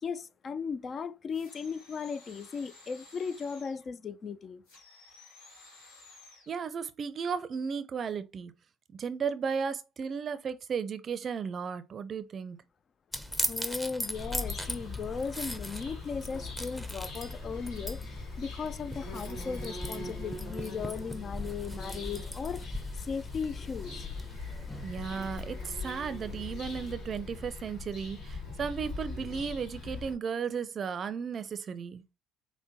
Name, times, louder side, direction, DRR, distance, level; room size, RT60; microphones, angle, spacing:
voice 1, 0.0-4.6 13.5-24.1, left 5 dB, 40° left, 0.3 m, -37 dB
sound 1, 1.3-3.9 4.6-6.6, left 3 dB, 80° left, 1.3 m, -55 dB
voice 2, 6.5-8.5 8.9-12.6 24.8-32.0, right 6 dB, 45° right, 0.5 m, -35 dB
sound 2, 13.1-26.9, left 1 dB, 5° left, 0.7 m, -40 dB
Bird vocalization bird call bird song, 14.1-30.1, left 3 dB, 65° left, 1.8 m, -41 dB
5.6 x 2.1 x 2.8 m
hypercardioid pair, 60°, 0 cm